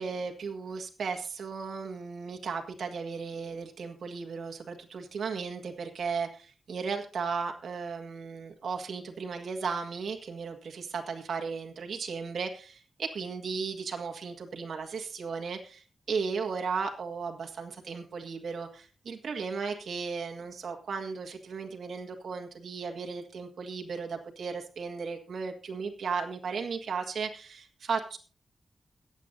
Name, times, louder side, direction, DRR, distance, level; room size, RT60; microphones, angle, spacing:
voice 1, 0.0-28.2, right 5 dB, 75° right, 3 dB, 1.8 m, -35 dB
22.0 x 8.3 x 2.7 m, 0.37 s
wide cardioid pair, 135°, 0 cm